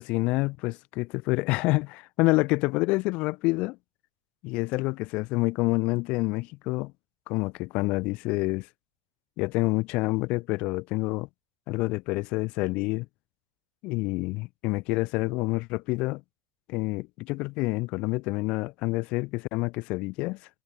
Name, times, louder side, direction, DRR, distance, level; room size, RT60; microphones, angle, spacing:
voice 1, 0.0-3.8 4.4-6.9 7.3-8.7 9.4-11.3 11.7-13.1 13.8-16.2 16.7-20.4, left 23 dB, 60° left, 3.9 m, -27 dB
supercardioid pair, 110°, 2 cm